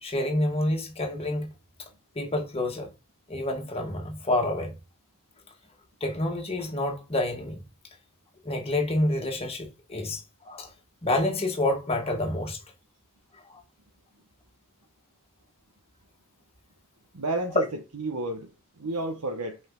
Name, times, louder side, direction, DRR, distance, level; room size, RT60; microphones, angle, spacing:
voice 1, 0.0-1.5 2.1-2.9 3.3-4.7 6.0-7.6 8.4-10.7 11.0-12.6 13.5-13.6 17.5-17.6, left 1 dB, 25° left, 1.7 m, -28 dB
voice 2, 17.1-18.5 18.8-19.6, right 2 dB, 80° right, 1.0 m, -31 dB
5.5 x 5.1 x 3.8 m
head